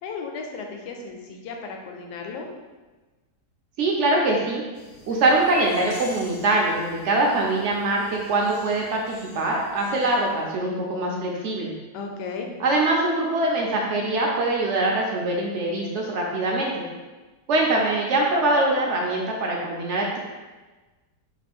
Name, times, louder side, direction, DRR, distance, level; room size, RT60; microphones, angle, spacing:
voice 1, 0.0-2.5 11.9-12.5, left 4 dB, 80° left, 2 dB, 1.2 m, -35 dB
voice 2, 3.8-4.6 5.1-11.7 12.6-16.8 17.5-20.2, right 2 dB, 70° right, -1 dB, 0.7 m, -23 dB
sound 1, 4.8-10.3, left 2 dB, 65° left, 0.9 m, -40 dB
3.1 x 3.0 x 4.2 m, 1.2 s
omnidirectional pair, 1.8 m